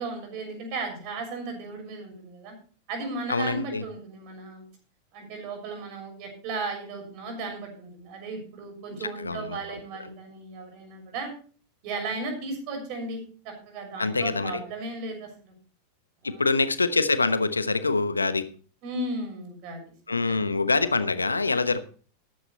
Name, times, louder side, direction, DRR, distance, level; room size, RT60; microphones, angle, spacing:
voice 1, 0.0-2.5 2.9-4.6 5.1-11.3 11.8-15.5 16.2-16.4 18.8-20.4, right 3 dB, 45° right, 4 dB, 6.5 m, -35 dB
voice 2, 3.3-3.8 9.0-9.8 14.0-14.6 16.2-18.5 20.1-21.8, left 3 dB, 80° left, 13 dB, 1.0 m, -25 dB
13.5 x 11.5 x 4.2 m, 0.40 s
figure-of-eight pair, 90°, 0 cm